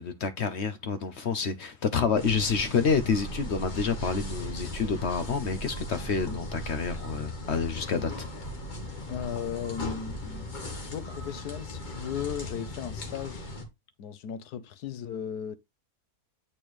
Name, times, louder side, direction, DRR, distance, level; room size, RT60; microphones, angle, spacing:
voice 1, 0.0-8.3, left 5 dB, 55° left, 0.9 m, -28 dB
sound 1, 2.2-13.6, left 1 dB, 30° left, 1.4 m, -38 dB
voice 2, 9.1-10.5 10.8-13.4 14.0-15.6, left 8 dB, 90° left, 1.3 m, -36 dB
8.7 x 4.4 x 3.1 m
omnidirectional pair, 1.6 m